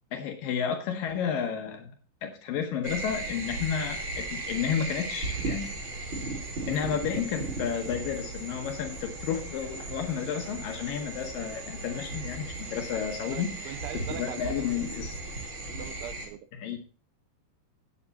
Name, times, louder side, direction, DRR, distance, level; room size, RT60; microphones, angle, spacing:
voice 1, 0.1-1.9 2.2-5.8 6.7-15.2 16.5-16.8, left 8 dB, 85° left, 4 dB, 1.9 m, -32 dB
sound 1, 2.8-16.3, right 2 dB, 35° right, 2.3 m, -36 dB
voice 2, 13.3-14.9 15.8-16.4, right 11 dB, 80° right, 11 dB, 3.0 m, -41 dB
9.6 x 8.6 x 4.1 m, 0.37 s
omnidirectional pair, 5.5 m